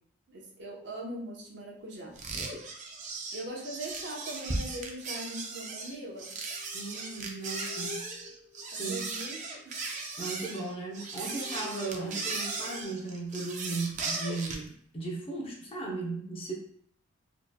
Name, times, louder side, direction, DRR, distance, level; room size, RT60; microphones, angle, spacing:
voice 1, 0.3-2.2 3.3-6.3 8.7-10.3 12.0-12.3, right 1 dB, 55° right, -3 dB, 0.9 m, -41 dB
sound 1, 2.2-14.7, right 3 dB, 35° right, 0.5 m, -37 dB
sound 2, 6.1-9.7 10.3-10.4 10.7-12.8, left 6 dB, ahead, 0.9 m, -50 dB
voice 2, 6.7-8.0 8.8-9.1 10.2-16.5, right 3 dB, 25° left, -1 dB, 0.6 m, -36 dB
4.2 x 2.9 x 2.2 m, 0.64 s
head